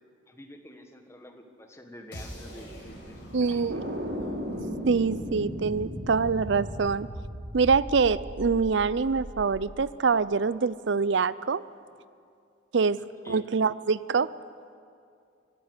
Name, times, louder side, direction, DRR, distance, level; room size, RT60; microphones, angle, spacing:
voice 1, 0.3-3.8 13.0-13.4, equal, 15° left, 4 dB, 1.6 m, -48 dB
sound 1, 2.1-8.1, equal, 60° left, 5.2 m, -45 dB
voice 2, 3.3-3.8 4.9-7.1 7.5-11.6 12.7-14.3, right 5 dB, 65° right, 18 dB, 0.5 m, -25 dB
sound 2, 3.7-9.7, equal, 90° right, 2.7 m, -36 dB
24.0 x 11.5 x 9.6 m, 2.4 s
head